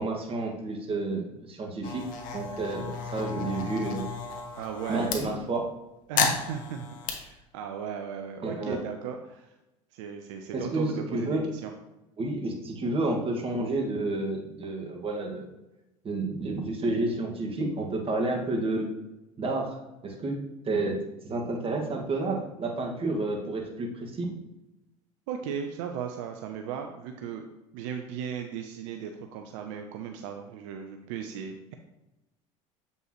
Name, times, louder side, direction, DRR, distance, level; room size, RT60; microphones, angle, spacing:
voice 1, 0.0-2.0 2.3-4.1 4.9-5.7 8.4-8.8 10.5-11.5 12.2-15.5 16.0-18.9 19.4-19.8 20.0-20.4 20.6-21.0 21.2-24.3, right 2 dB, 35° right, 1 dB, 1.8 m, -30 dB
sound 1, 1.8-5.2 6.2-7.1, left 6 dB, 55° left, 1.3 m, -32 dB
voice 2, 4.6-5.2 6.1-9.5 9.9-11.7 25.3-27.5 27.7-31.7, right 7 dB, 75° right, 5 dB, 0.7 m, -36 dB
8.0 x 5.4 x 3.1 m, 0.95 s
hypercardioid pair, 80°, 16 cm